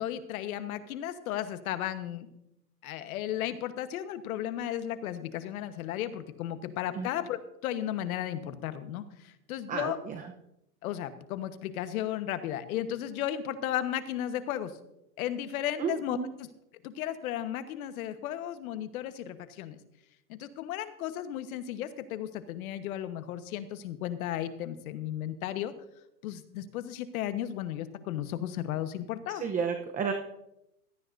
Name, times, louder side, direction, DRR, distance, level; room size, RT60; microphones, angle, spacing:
voice 1, 0.0-2.3 2.8-10.0 10.8-14.7 15.2-16.5 16.8-19.8 20.3-25.7 26.2-29.4, left 11 dB, 65° left, 11 dB, 1.3 m, -34 dB
voice 2, 9.7-10.2 15.8-16.3 29.4-30.1, right 6 dB, 15° right, 5 dB, 0.8 m, -32 dB
16.5 x 13.0 x 2.6 m, 0.85 s
hypercardioid pair, 130°, 46 cm